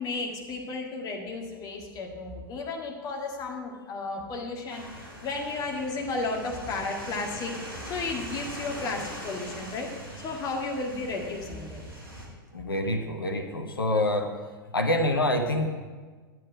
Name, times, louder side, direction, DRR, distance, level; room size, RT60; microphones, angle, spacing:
voice 1, 0.0-7.5 7.8-9.9 10.2-11.8, left 3 dB, 35° left, 1 dB, 1.9 m, -33 dB
sound 1, 4.7-12.3, right 1 dB, 80° right, 2.2 m, -42 dB
voice 2, 12.5-14.3 14.7-15.7, left 1 dB, 75° left, 4 dB, 0.9 m, -26 dB
9.8 x 9.5 x 4.8 m, 1.4 s
figure-of-eight pair, 85°, 12 cm